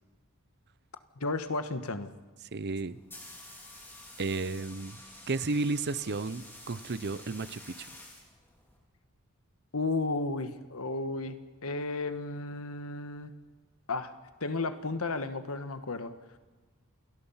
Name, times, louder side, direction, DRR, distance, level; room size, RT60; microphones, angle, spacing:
voice 1, 1.2-2.1 9.7-11.4 11.6-13.3 13.9-14.1 14.4-16.1, left 3 dB, 75° left, 10 dB, 1.5 m, -33 dB
voice 2, 2.5-3.0 4.2-5.0 5.3-7.9, right 3 dB, 50° right, 16 dB, 0.7 m, -33 dB
sound 1, 2.8-8.8, left 1 dB, 10° left, 4.6 m, -50 dB
28.0 x 19.0 x 5.7 m, 1.3 s
head